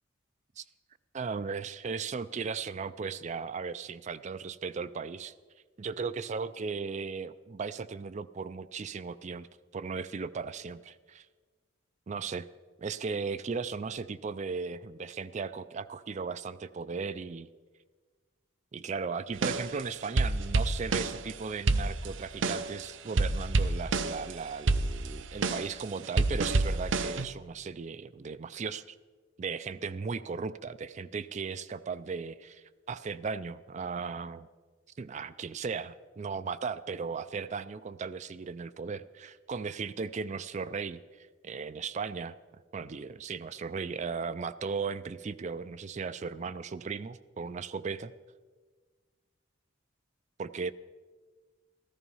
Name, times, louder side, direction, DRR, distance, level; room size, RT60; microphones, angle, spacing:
voice 1, 1.1-5.3 5.8-9.5 9.7-11.3 12.1-12.5 12.8-17.5 18.7-29.0 29.4-34.5 35.0-42.3 42.7-48.1 50.4-50.7, right 5 dB, 35° right, 14 dB, 0.4 m, -36 dB
sound 1, 19.4-21.3 21.7-22.8 23.1-24.3 24.7-27.3, right 3 dB, 70° right, 0.7 m, -28 dB
14.5 x 14.0 x 5.5 m, 1.4 s
head